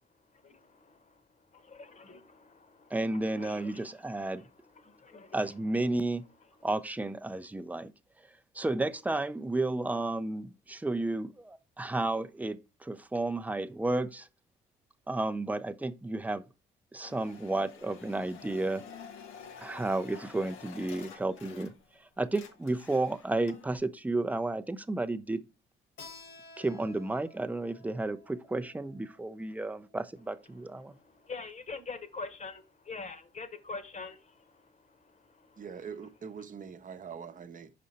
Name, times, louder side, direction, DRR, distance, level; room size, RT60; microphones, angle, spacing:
voice 1, 0.4-1.1 1.5-3.9 4.8-5.4 30.9-35.6, left 4 dB, 35° left, 1.1 m, -45 dB
voice 2, 2.9-4.4 5.3-6.2 6.6-7.9 8.2-14.3 15.1-16.4 16.9-18.8 19.6-25.4 26.6-30.9, right 2 dB, 10° right, 0.5 m, -32 dB
sound 1, 17.0-22.0 22.2-23.8, left 7 dB, 85° left, 0.8 m, -50 dB
Keyboard (musical), 26.0-31.2, left 3 dB, 70° left, 1.6 m, -54 dB
voice 3, 35.6-37.7, right 6 dB, 40° right, 0.8 m, -43 dB
5.5 x 5.1 x 4.2 m
cardioid pair, 90°, 20 cm